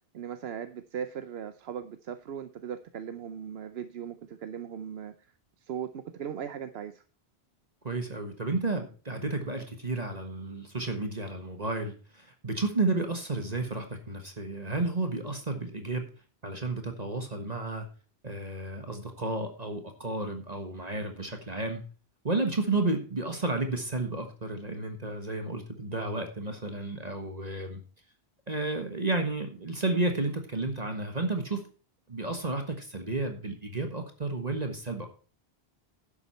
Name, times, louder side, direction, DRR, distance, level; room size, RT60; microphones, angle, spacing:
voice 1, 0.1-5.1 5.6-7.0, right 8 dB, 70° right, 10 dB, 0.9 m, -38 dB
voice 2, 7.8-16.1 16.4-17.9 18.2-21.8 22.2-27.8 28.5-31.6 32.1-35.1, right 2 dB, 40° right, 5 dB, 1.5 m, -32 dB
11.0 x 8.2 x 4.2 m, 0.38 s
omnidirectional pair, 1.1 m